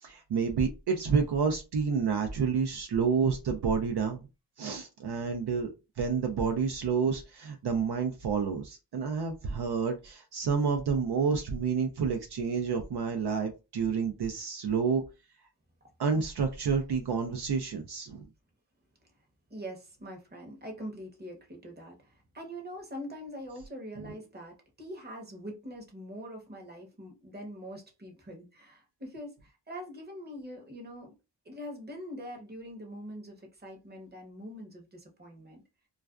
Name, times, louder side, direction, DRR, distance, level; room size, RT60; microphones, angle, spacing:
voice 1, 0.0-4.3 4.6-5.7 6.0-15.0 16.0-18.2, right 5 dB, 65° right, 0.5 m, -29 dB
voice 2, 19.5-31.1 31.4-35.6, equal, 25° right, 0.8 m, -43 dB
2.3 x 2.2 x 2.3 m
wide cardioid pair, 85°, 43 cm